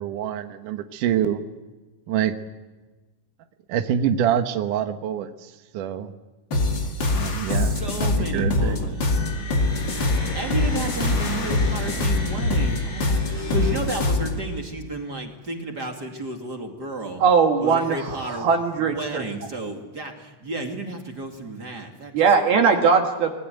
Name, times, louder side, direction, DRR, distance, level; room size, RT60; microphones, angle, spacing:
voice 1, 0.0-1.4 2.1-2.3 3.7-6.1 7.1-8.8, right 9 dB, 85° right, 7 dB, 1.8 m, -26 dB
sound 1, 6.5-14.4, left 2 dB, 45° left, 1.5 m, -24 dB
voice 2, 7.5-9.3 10.3-17.2 17.6-18.5 18.9-22.2, right 2 dB, 35° right, 3 dB, 1.7 m, -32 dB
sound 2, 8.9-14.6, left 2 dB, 80° left, 9.2 m, -34 dB
voice 3, 17.2-19.2 22.1-23.3, right 5 dB, 60° right, 4 dB, 3.1 m, -20 dB
26.0 x 20.5 x 9.2 m, 1.2 s
omnidirectional pair, 5.6 m